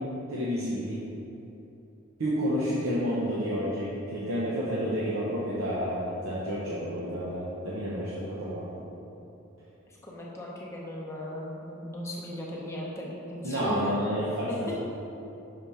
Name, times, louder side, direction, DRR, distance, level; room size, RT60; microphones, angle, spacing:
voice 1, 0.3-1.0 2.2-8.7 13.4-14.7, equal, 80° right, -7 dB, 0.9 m, -30 dB
voice 2, 9.9-13.9 14.7-14.8, left 1 dB, 15° left, -4 dB, 0.7 m, -37 dB
5.8 x 3.5 x 5.6 m, 2.9 s
head